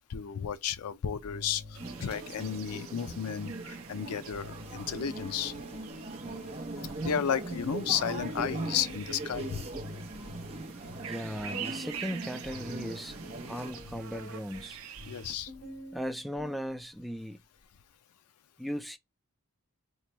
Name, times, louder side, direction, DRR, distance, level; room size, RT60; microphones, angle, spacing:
voice 1, 0.1-5.6 7.0-9.6 15.1-15.5, left 8 dB, 85° left, 0.4 m, -33 dB
sound 1, 0.6-0.7 1.2-17.1, left 1 dB, 60° left, 1.7 m, -49 dB
sound 2, 1.7-15.3, right 8 dB, 70° right, 0.5 m, -47 dB
sound 3, 1.8-13.7, right 2 dB, 25° right, 0.8 m, -40 dB
voice 2, 11.1-13.2 13.5-14.8 15.9-17.4 18.6-19.0, equal, ahead, 0.3 m, -37 dB
3.1 x 2.2 x 4.0 m
head